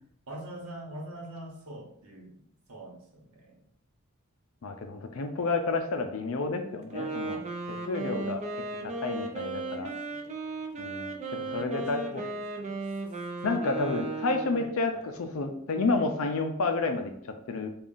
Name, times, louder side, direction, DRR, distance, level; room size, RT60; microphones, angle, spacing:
voice 1, 0.3-3.6 9.8-10.8 11.5-12.7 13.5-15.1, right 1 dB, 75° right, -1 dB, 1.0 m, -45 dB
voice 2, 4.6-7.4 7.7-8.4 8.8-9.9 10.8-12.2 13.4-17.1 17.5-17.7, left 3 dB, 65° left, 5 dB, 0.4 m, -30 dB
Wind instrument woodwind instrument, 6.8-14.7, right 3 dB, 30° right, 0.4 m, -36 dB
5.3 x 2.4 x 2.4 m, 0.68 s
head